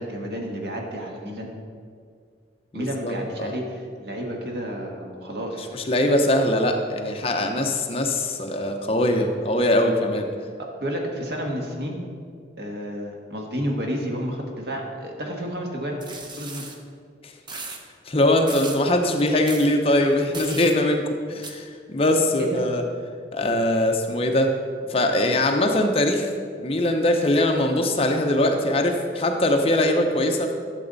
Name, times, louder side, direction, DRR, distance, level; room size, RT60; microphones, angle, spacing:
voice 1, 0.0-1.5 2.7-6.2 10.6-12.0 12.6-16.0 16.3-16.7 22.4-22.6, equal, 65° right, 0 dB, 1.5 m, -31 dB
voice 2, 2.7-3.5 5.9-10.3 18.1-22.8 23.3-24.5 24.9-26.3 26.6-30.5, left 1 dB, 35° left, 3 dB, 0.7 m, -22 dB
sound 1, 16.0-16.8 17.5-17.8 18.5-18.8 19.5-19.7 20.3-20.7 21.4-21.5, right 3 dB, 25° right, 0.7 m, -36 dB
12.0 x 7.1 x 4.0 m, 2.1 s
head